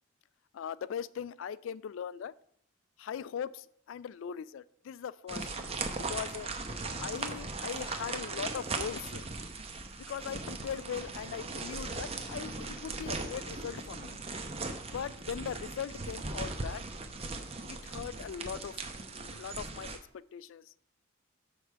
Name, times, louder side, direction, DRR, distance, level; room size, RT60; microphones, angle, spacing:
voice 1, 0.5-2.3 3.0-5.7 6.1-6.5 7.0-9.2 10.0-14.2 14.9-16.9 17.7-18.8 19.1-20.7, left 8 dB, 75° left, 19 dB, 0.3 m, -40 dB
sound 1, 5.3-20.0, right 3 dB, 30° right, 0.7 m, -39 dB
6.6 x 4.8 x 5.6 m, 0.66 s
head